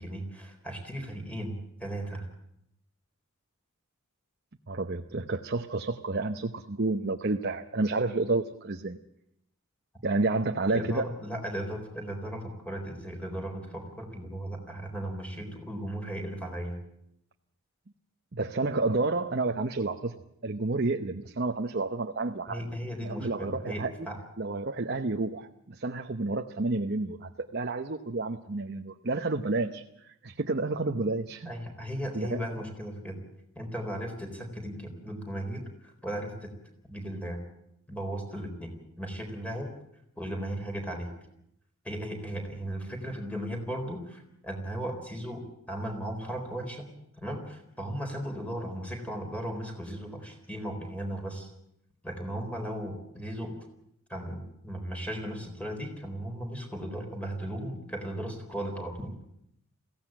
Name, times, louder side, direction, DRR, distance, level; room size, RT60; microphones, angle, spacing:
voice 1, 0.0-2.3 10.7-16.8 22.5-24.2 31.5-33.2 33.6-36.5 36.9-37.4 37.9-39.7 40.2-41.1 41.8-46.9 47.2-51.5 52.0-53.5 54.1-59.1, right 1 dB, 5° left, 4 dB, 4.0 m, -36 dB
voice 2, 4.7-9.0 10.0-11.0 18.3-20.1 20.4-22.6 23.0-23.9 24.4-29.8 30.2-31.5 32.1-32.4, right 3 dB, 50° right, 5 dB, 0.9 m, -30 dB
22.0 x 16.5 x 9.0 m, 0.78 s
head